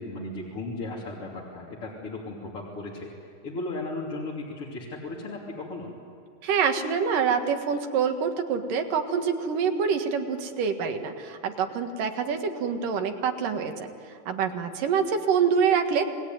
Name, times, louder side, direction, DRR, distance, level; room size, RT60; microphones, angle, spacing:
voice 1, 0.0-3.1 3.4-5.9, left 2 dB, 40° left, -5 dB, 3.7 m, -36 dB
voice 2, 6.4-13.9 14.3-16.0, right 6 dB, 70° right, 6 dB, 3.2 m, -26 dB
29.0 x 20.0 x 9.4 m, 2.6 s
omnidirectional pair, 4.1 m